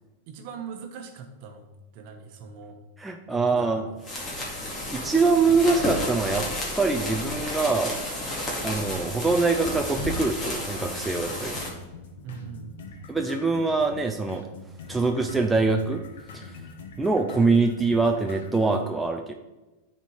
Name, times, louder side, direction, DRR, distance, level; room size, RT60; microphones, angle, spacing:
voice 1, 0.3-1.7 1.9-2.8 3.3-4.0 12.2-13.0, right 6 dB, 50° right, 6 dB, 1.2 m, -41 dB
voice 2, 3.0-3.9 4.4-6.5 6.8-8.0 8.6-11.6 13.1-14.5 14.9-16.0 16.3-16.6 17.0-19.3, right 3 dB, 5° right, 3 dB, 0.5 m, -24 dB
sound 1, 4.0-11.7, left 1 dB, 15° left, 2.2 m, -32 dB
sound 2, 10.8-18.8, left 3 dB, 80° left, 1.3 m, -43 dB
9.5 x 4.2 x 4.8 m, 1.1 s
supercardioid pair, 145°, 0 cm